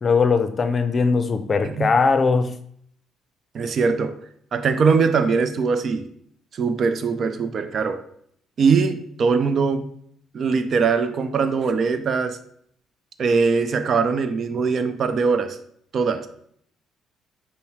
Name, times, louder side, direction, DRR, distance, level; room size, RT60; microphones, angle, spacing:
voice 1, 0.0-2.6, left 4 dB, 40° left, 0.5 m, -20 dB
voice 2, 3.5-4.2 4.5-6.1 6.5-8.0 8.6-9.9 10.3-12.4 13.2-15.6 15.9-16.3, right 5 dB, 55° right, 0.5 m, -21 dB
5.4 x 2.1 x 4.6 m
hypercardioid pair, 55°, 0 cm